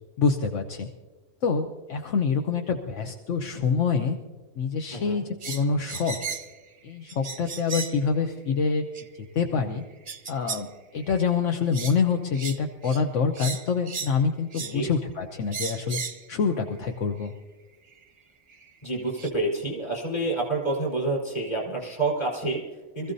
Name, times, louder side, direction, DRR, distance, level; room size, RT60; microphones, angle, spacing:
voice 1, 0.2-0.9 1.4-4.2 4.6-6.2 6.8-8.8 9.1-9.8 10.3-10.7 10.9-16.0 16.3-17.3, left 5 dB, 75° left, 4 dB, 1.2 m, -26 dB
voice 2, 4.9-5.2 14.6-14.9 18.8-23.1, right 2 dB, 35° left, -2 dB, 4.7 m, -28 dB
sound 1, 5.4-6.6 7.1-8.0 8.9-9.0 10.1-10.7 11.0-11.2 11.7-12.0 12.3-12.6 12.8-13.0 13.3-14.2 14.5-14.8 15.5-16.2 17.2-17.3 18.5-18.6 19.2-19.3, right 5 dB, 40° right, 0.7 m, -35 dB
25.0 x 15.0 x 2.7 m, 1.2 s
omnidirectional pair, 1.3 m